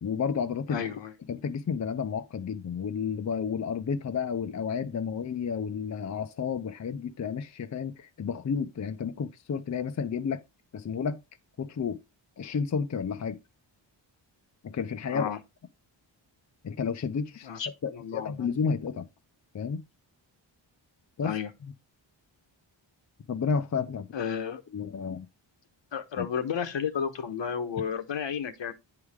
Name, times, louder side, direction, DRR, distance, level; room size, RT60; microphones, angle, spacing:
voice 1, 0.0-0.8 1.3-10.4 10.7-11.2 11.6-12.0 12.4-13.4 14.6-15.3 16.6-17.5 17.8-19.1 19.5-19.8 21.2-21.3 21.6-21.7 23.3-24.1 24.7-25.3 26.2-26.3, left 6 dB, 40° left, 0.6 m, -31 dB
voice 2, 0.7-1.1 15.1-15.4 17.4-18.5 21.2-21.5 24.1-24.6 25.9-28.7, left 7 dB, 70° left, 1.1 m, -32 dB
9.2 x 4.8 x 3.5 m
wide cardioid pair, 165°, 46 cm